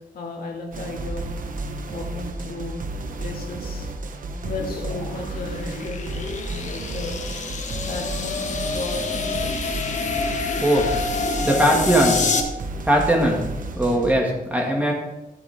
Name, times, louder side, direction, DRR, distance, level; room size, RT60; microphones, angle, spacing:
voice 1, 0.1-1.2 1.9-2.9 3.2-3.9 4.4-7.4 7.9-9.9, left 2 dB, 90° left, 0 dB, 2.0 m, -35 dB
sound 1, 0.7-14.1, right 2 dB, 65° right, 0.9 m, -32 dB
sound 2, 4.4-12.4, left 4 dB, 55° left, 1.3 m, -27 dB
voice 2, 11.4-12.3 12.8-13.5 13.7-14.9, right 1 dB, 10° right, -1 dB, 2.1 m, -19 dB
12.5 x 7.9 x 3.6 m, 0.98 s
wide cardioid pair, 125°, 15 cm